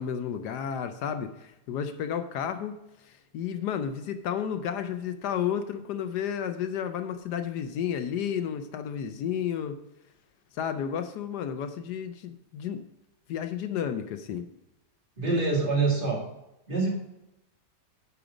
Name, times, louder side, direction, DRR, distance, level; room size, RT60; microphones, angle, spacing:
voice 1, 0.0-2.8 3.0-9.8 10.5-12.8 13.3-14.5, left 8 dB, 75° left, 9 dB, 1.2 m, -32 dB
voice 2, 15.2-16.2 16.7-16.9, right 3 dB, 30° right, -3 dB, 2.4 m, -25 dB
9.9 x 5.1 x 5.0 m, 0.91 s
omnidirectional pair, 1.8 m